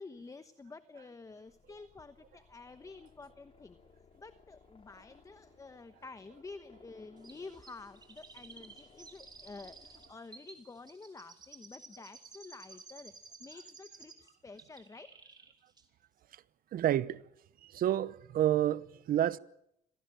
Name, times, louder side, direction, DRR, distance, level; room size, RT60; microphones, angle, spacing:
voice 1, 0.0-3.8 4.2-15.2, left 3 dB, 20° left, 1.1 m, -50 dB
sound 1, 1.4-10.1, left 5 dB, 35° left, 4.0 m, -62 dB
Chirp tweet, 7.2-14.3 14.6-15.5 15.8-15.9, right 4 dB, 25° right, 4.2 m, -54 dB
voice 2, 16.7-17.2 17.6-19.4, right 12 dB, 60° right, 0.9 m, -29 dB
26.5 x 18.0 x 9.0 m
cardioid pair, 110°, 17 cm